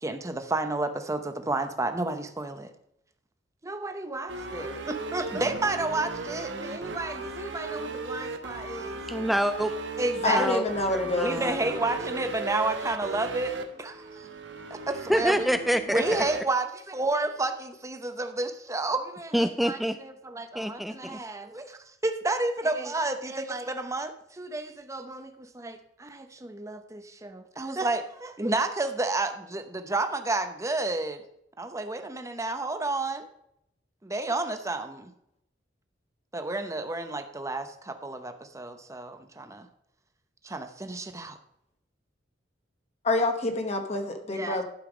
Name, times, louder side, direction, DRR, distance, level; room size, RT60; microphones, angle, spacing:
voice 1, 0.0-2.7 3.6-9.0 10.0-10.5 11.2-14.3 14.7-15.5 15.9-31.2 31.6-33.3 34.0-35.1 36.3-39.7 40.4-41.4 44.3-44.6, right 2 dB, 15° right, 8 dB, 0.8 m, -31 dB
sound 1, 4.3-16.4, right 3 dB, 75° right, 1.1 m, -36 dB
voice 2, 9.1-9.7 10.3-10.6 10.9-11.7 15.1-16.0 16.3-16.4 19.3-20.0 20.5-21.2, equal, ahead, 9 dB, 0.3 m, -27 dB
voice 3, 10.2-11.3 43.0-44.6, left 2 dB, 35° left, 4 dB, 1.0 m, -27 dB
11.5 x 5.6 x 5.0 m, 0.75 s
head